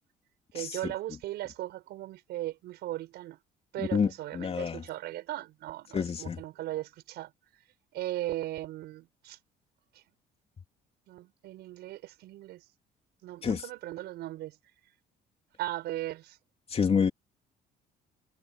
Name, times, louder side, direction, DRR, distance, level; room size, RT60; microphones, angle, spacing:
voice 1, 0.5-3.4 3.7-7.3 7.9-9.4 11.1-12.6 13.2-14.6 15.6-16.4, right 15 dB, 80° right, 5.7 m, -37 dB
voice 2, 3.9-4.8 5.9-6.4 13.4-13.6 16.7-17.1, left 6 dB, 35° left, 3.2 m, -28 dB
cardioid pair, 110°, 17 cm